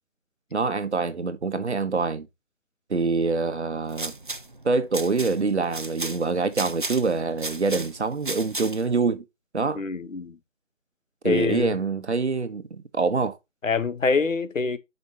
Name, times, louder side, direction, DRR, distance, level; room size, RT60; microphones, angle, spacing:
voice 1, 0.5-2.3 2.9-4.1 4.6-9.2 9.5-9.8 11.2-13.4, right 4 dB, 60° right, 1.3 m, -25 dB
sound 1, 3.7-9.0, right 2 dB, 40° right, 0.5 m, -35 dB
voice 2, 9.7-10.4 11.2-11.7 13.6-14.8, left 4 dB, 85° left, 1.4 m, -25 dB
11.0 x 5.4 x 2.9 m
figure-of-eight pair, 175°, 38 cm